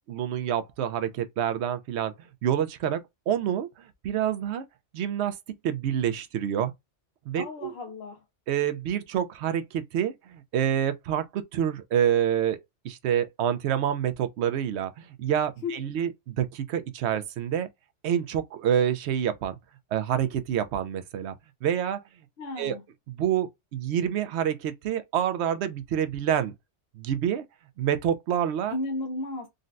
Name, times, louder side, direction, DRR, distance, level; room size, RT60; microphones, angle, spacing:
voice 1, 0.1-2.1 2.4-4.6 4.9-5.4 5.6-6.7 7.3-7.7 8.5-12.6 12.8-17.7 18.0-19.6 19.9-21.4 21.6-22.0 22.6-22.8 23.1-26.5 26.9-27.4 27.8-28.8, right 9 dB, 70° right, 0.8 m, -27 dB
voice 2, 7.3-8.2 15.6-16.0 22.4-22.8 28.7-29.5, left 2 dB, 60° left, 0.8 m, -34 dB
3.9 x 2.1 x 2.5 m
omnidirectional pair, 1.3 m